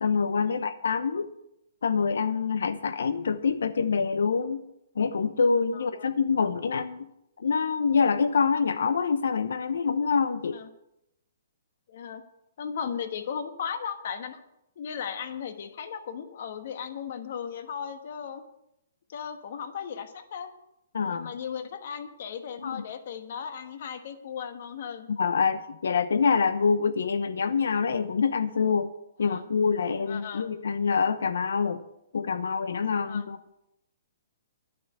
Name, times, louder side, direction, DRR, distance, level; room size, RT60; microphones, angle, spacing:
voice 1, 0.0-1.3 1.8-4.6 5.0-7.1 7.4-10.6 20.9-21.3 22.6-22.8 25.1-28.9 29.2-31.8 32.1-33.4, left 5 dB, 85° left, 11 dB, 0.8 m, -26 dB
voice 2, 5.7-6.1 10.5-10.7 11.9-12.2 12.6-14.4 14.8-18.4 19.1-20.5 21.0-25.1 29.2-29.5 30.1-30.5 33.0-33.3, left 7 dB, 45° left, 9 dB, 1.2 m, -36 dB
11.5 x 6.8 x 9.3 m, 0.86 s
hypercardioid pair, 175°, 0 cm